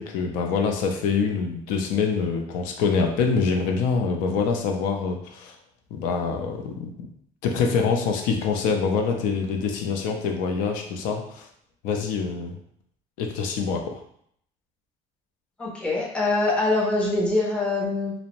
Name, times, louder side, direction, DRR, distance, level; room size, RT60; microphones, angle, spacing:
voice 1, 0.0-5.5 5.9-6.9 7.4-11.5 11.8-12.6 13.2-14.0, left 5 dB, 80° left, 3 dB, 0.4 m, -25 dB
voice 2, 15.6-18.1, left 2 dB, 5° left, -3 dB, 0.5 m, -24 dB
2.5 x 2.0 x 2.8 m, 0.67 s
cardioid pair, 175°, 14 cm